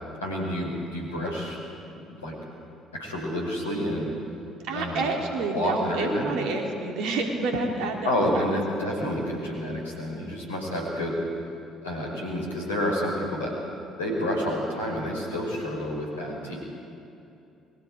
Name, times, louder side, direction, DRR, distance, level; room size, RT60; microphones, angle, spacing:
voice 1, 0.2-1.6 1.9-2.4 2.9-4.1 4.7-5.1 5.5-6.3 8.1-11.2 11.8-13.5 14.0-16.6, left 1 dB, 80° left, -2 dB, 5.4 m, -29 dB
voice 2, 4.7-8.6, right 3 dB, 60° right, 2 dB, 3.0 m, -29 dB
30.0 x 22.0 x 5.0 m, 2.8 s
figure-of-eight pair, 50°, 0 cm